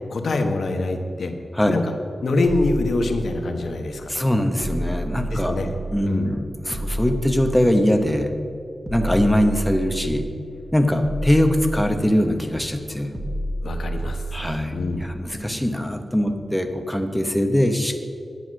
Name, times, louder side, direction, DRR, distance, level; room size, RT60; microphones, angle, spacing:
voice 1, 0.1-1.3 1.7-1.8 2.2-4.2 5.3-5.7 6.0-6.3 13.6-14.2 14.7-15.1, left 2 dB, 70° left, 4 dB, 1.2 m, -24 dB
sound 1, 2.4-3.7 4.6-6.2 6.7-8.1 8.8-10.5 11.0-12.4 13.1-14.7, right 1 dB, 20° right, 1.3 m, -30 dB
voice 2, 4.1-5.6 5.9-8.3 8.9-10.2 10.7-13.1 14.3-14.7 15.0-18.0, equal, 5° left, 6 dB, 0.9 m, -21 dB
10.5 x 9.3 x 6.3 m, 2.5 s
wide cardioid pair, 165°, 0 cm